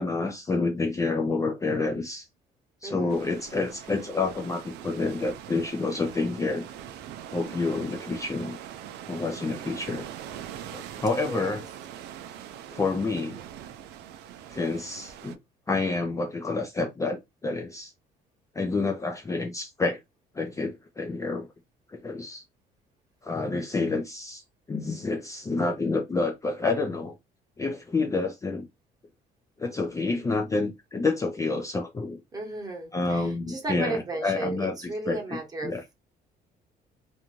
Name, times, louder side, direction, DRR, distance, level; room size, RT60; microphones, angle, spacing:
voice 1, 0.0-2.3 2.8-6.6 7.3-8.6 9.1-10.1 10.7-11.6 12.7-13.4 14.5-15.4 15.7-17.9 18.6-20.0 20.3-21.5 21.9-22.4 23.2-27.1 27.6-28.7 29.6-32.2 32.9-34.8 35.1-35.8, left 3 dB, 20° left, 0.4 m, -28 dB
voice 2, 2.8-3.2 11.1-11.6 32.3-35.7, right 2 dB, 20° right, 1.1 m, -35 dB
sound 1, 3.1-15.3, right 10 dB, 80° right, 0.4 m, -42 dB
2.6 x 2.2 x 2.9 m
cardioid pair, 110°, 17 cm